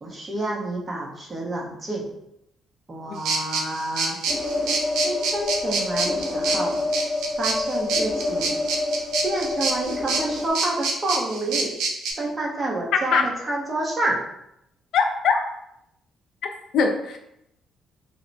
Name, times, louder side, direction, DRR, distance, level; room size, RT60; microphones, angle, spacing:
voice 1, 0.0-2.1 2.9-4.2 5.0-6.8 7.4-8.5 9.2-11.7 12.2-13.2 13.5-14.2, right 2 dB, 35° right, -2 dB, 0.9 m, -28 dB
sound 1, 3.3-12.1, right 4 dB, 85° right, 0.5 m, -27 dB
sound 2, 4.3-10.5, left 2 dB, 30° left, 0.8 m, -27 dB
voice 2, 12.9-13.2 14.9-15.4 16.7-17.2, left 5 dB, 75° left, 3 dB, 0.5 m, -21 dB
2.9 x 2.1 x 3.9 m, 0.80 s
cardioid pair, 90°, 0 cm